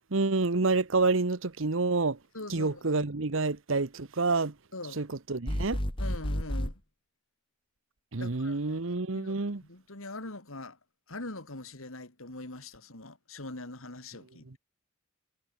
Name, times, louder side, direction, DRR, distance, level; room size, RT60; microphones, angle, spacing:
voice 1, 0.1-2.2 2.5-4.5 5.0-5.8 8.1-9.6, right 3 dB, 65° right, 1.0 m, -28 dB
voice 2, 2.3-3.0 4.7-5.0 6.0-6.8 8.2-8.8 9.1-10.8 11.1-14.6, left 2 dB, 75° left, 3.3 m, -42 dB
sound 1, 5.5-6.7, equal, 25° left, 2.3 m, -31 dB
head